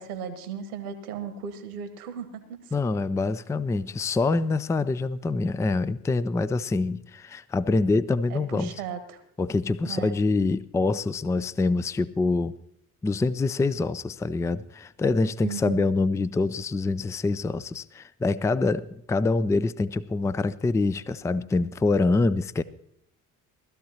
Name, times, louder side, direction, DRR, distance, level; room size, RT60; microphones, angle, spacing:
voice 1, 0.0-2.7 8.3-9.2 9.8-10.1 15.4-15.9, right 7 dB, 75° right, 9 dB, 1.4 m, -36 dB
voice 2, 2.7-8.7 9.4-12.5 13.0-22.6, left 3 dB, 5° left, 16 dB, 0.4 m, -25 dB
19.5 x 13.5 x 2.9 m, 0.70 s
figure-of-eight pair, 45°, 45 cm